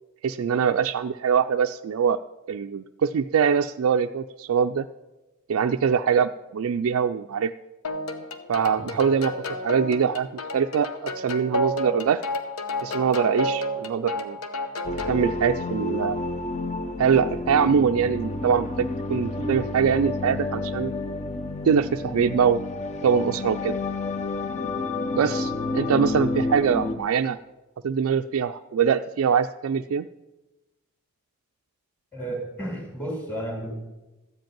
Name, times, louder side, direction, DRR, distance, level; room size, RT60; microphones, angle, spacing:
voice 1, 0.2-2.2 2.5-4.9 5.5-7.5 8.5-9.3 9.6-10.3 10.5-12.2 12.8-14.4 15.1-16.2 17.0-20.9 21.6-22.6 23.0-23.7 25.2-27.4 27.8-30.1, right 7 dB, 70° right, 6 dB, 0.3 m, -23 dB
sound 1, 7.8-15.2, left 1 dB, 80° left, 1.0 m, -31 dB
sound 2, 14.8-26.9, left 2 dB, 30° left, 0.7 m, -30 dB
voice 2, 32.1-33.8, right 1 dB, 5° left, -2 dB, 2.3 m, -32 dB
14.0 x 5.2 x 9.0 m, 1.1 s
head